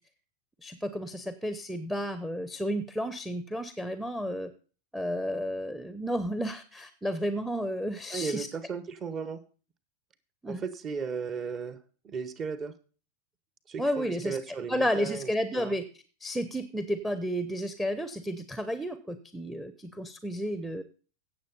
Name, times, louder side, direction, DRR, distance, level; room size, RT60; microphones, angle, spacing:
voice 1, 0.6-4.5 4.9-8.5 10.4-10.6 13.8-14.4 14.7-15.9 16.2-20.8, equal, ahead, 12 dB, 0.8 m, -32 dB
voice 2, 8.1-9.4 10.5-11.8 12.0-12.7 13.7-15.8, right 5 dB, 25° right, 14 dB, 1.2 m, -35 dB
16.5 x 7.2 x 4.1 m, 0.39 s
figure-of-eight pair, 90°, 0 cm